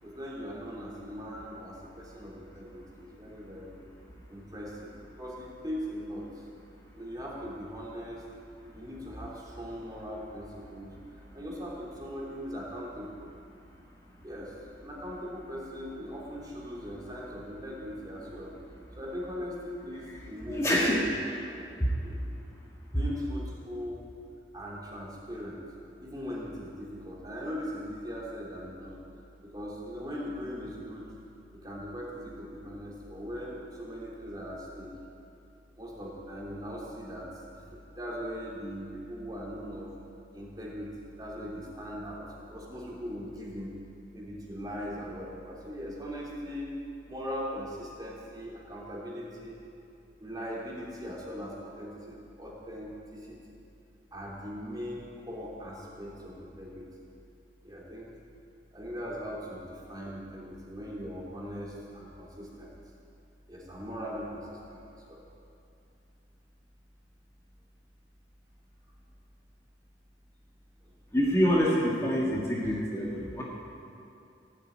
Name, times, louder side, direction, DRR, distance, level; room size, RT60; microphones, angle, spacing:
voice 1, 0.0-3.8 4.3-4.9 5.2-6.3 6.9-8.2 8.7-10.9 11.3-13.2 14.2-14.5 14.8-18.5 19.0-21.1 22.0-22.2 22.9-24.0 24.5-25.6 26.0-29.0 29.4-31.1 31.6-34.9 35.8-39.9 40.3-43.7 44.1-46.7 47.1-49.6 50.2-53.4 54.1-56.9 57.6-58.1 58.7-62.7 63.5-65.2, equal, 20° right, -5 dB, 3.2 m, -40 dB
voice 2, 20.5-21.0 21.8-21.9 71.1-73.4, equal, 15° left, -5 dB, 1.8 m, -26 dB
17.0 x 8.0 x 9.4 m, 2.6 s
head